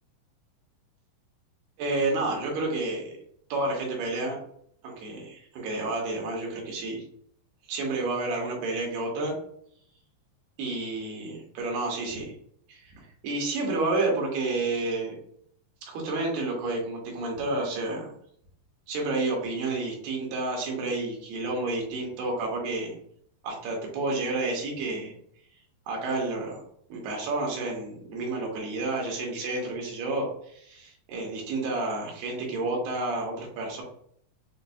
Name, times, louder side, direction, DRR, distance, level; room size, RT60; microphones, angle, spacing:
voice 1, 1.8-3.2 3.5-4.4 4.8-7.0 7.7-9.3 10.6-12.3 12.7-15.1 15.9-18.1 18.9-22.9 23.4-25.1 25.9-26.6 26.9-33.8, right 2 dB, 75° right, -1 dB, 2.9 m, -30 dB
7.1 x 2.6 x 2.6 m, 0.65 s
omnidirectional pair, 5.0 m